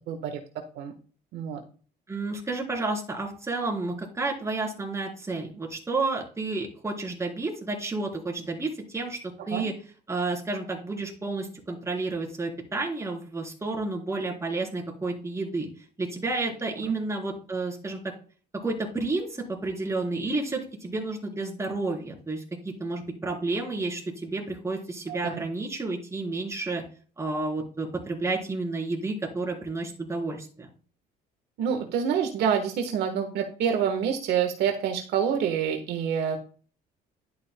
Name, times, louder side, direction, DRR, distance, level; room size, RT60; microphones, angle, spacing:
voice 1, 0.1-0.4 0.7-0.9 1.3-1.6 9.5-9.7 16.9-17.0 25.1-25.4 31.6-36.4, right 7 dB, 75° right, 4 dB, 1.4 m, -27 dB
voice 2, 2.1-9.2 9.5-9.7 10.1-15.7 16.0-18.0 18.6-26.8 27.2-30.7, right 3 dB, 15° right, 1 dB, 3.7 m, -31 dB
11.0 x 8.4 x 2.2 m, 0.39 s
cardioid pair, 110°, 17 cm